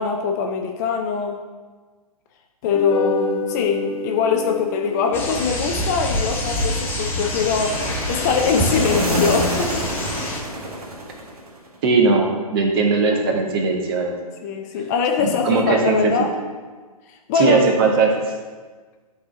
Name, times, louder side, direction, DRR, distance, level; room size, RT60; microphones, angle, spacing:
voice 1, 0.0-1.4 2.6-9.9 14.4-16.3 17.1-17.6, left 6 dB, 25° left, 3 dB, 0.5 m, -22 dB
sound 1, 2.6-9.2, left 2 dB, 60° left, 1.3 m, -30 dB
sound 2, 5.1-10.4, left 1 dB, 10° left, 1.0 m, -26 dB
sound 3, 7.4-11.7, right 1 dB, 70° right, 1.4 m, -27 dB
voice 2, 11.8-14.1 15.2-16.1 17.3-18.1, right 4 dB, 40° right, 1 dB, 1.3 m, -19 dB
11.5 x 4.1 x 3.9 m, 1.4 s
figure-of-eight pair, 120°, 20 cm